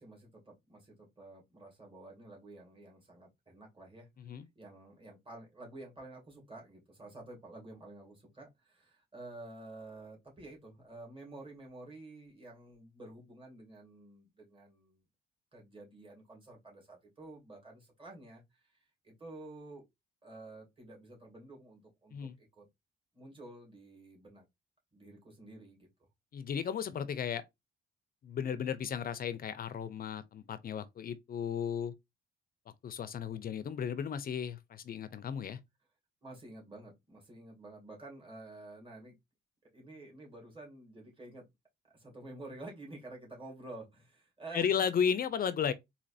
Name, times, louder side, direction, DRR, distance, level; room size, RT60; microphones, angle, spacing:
voice 1, 0.0-4.1 4.6-15.0 15.5-19.8 20.2-22.7 23.1-24.4 24.9-25.9 36.2-39.1 39.7-41.4 41.9-44.8, right 2 dB, 25° right, 2.3 m, -50 dB
voice 2, 26.3-27.4 28.2-31.9 32.8-35.6 44.5-45.7, left 7 dB, 45° left, 0.5 m, -34 dB
4.1 x 2.9 x 2.6 m
cardioid pair, 90°, 20 cm